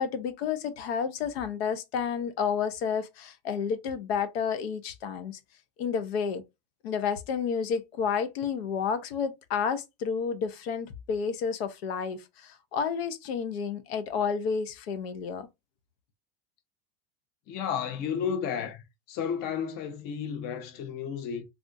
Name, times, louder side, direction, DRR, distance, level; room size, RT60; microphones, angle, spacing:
voice 1, 0.0-5.4 5.8-6.4 6.8-15.5, left 6 dB, 80° left, 0.7 m, -30 dB
voice 2, 17.5-18.8 19.1-21.4, left 7 dB, 30° left, 0.6 m, -32 dB
3.5 x 2.5 x 2.5 m
supercardioid pair, 165°, 31 cm